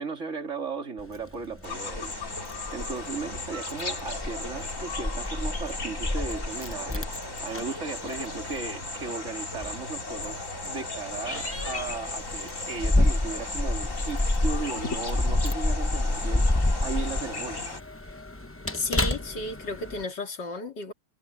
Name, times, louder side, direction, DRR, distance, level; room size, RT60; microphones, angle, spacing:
voice 1, 0.0-2.2 2.7-7.1 7.4-16.5 16.8-17.6, right 4 dB, 45° right, 3.2 m, -36 dB
Keys jangling, 1.0-20.0, left 1 dB, 20° left, 0.4 m, -30 dB
sound 1, 1.6-17.8, left 3 dB, 45° left, 4.2 m, -36 dB
voice 2, 18.7-20.9, left 2 dB, 85° left, 3.4 m, -33 dB
omnidirectional pair, 1.8 m